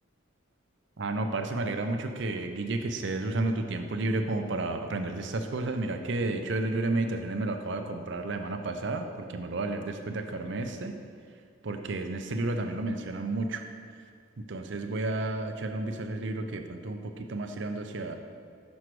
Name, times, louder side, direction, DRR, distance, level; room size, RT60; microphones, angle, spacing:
voice 1, 1.0-10.9 11.6-13.6 14.4-18.1, right 2 dB, 60° right, 6 dB, 0.6 m, -31 dB
6.3 x 4.7 x 6.0 m, 2.1 s
head